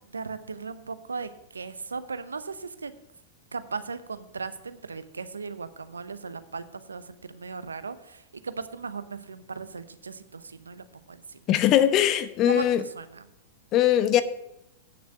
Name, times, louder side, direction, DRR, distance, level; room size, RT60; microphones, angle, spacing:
voice 1, 0.1-2.9 3.5-11.4 12.5-12.6 13.0-13.2, right 4 dB, 85° right, 13 dB, 0.7 m, -37 dB
voice 2, 11.5-12.8 13.7-14.2, left 11 dB, 40° left, 13 dB, 0.9 m, -21 dB
9.0 x 6.8 x 7.5 m, 0.85 s
hypercardioid pair, 100°, 0 cm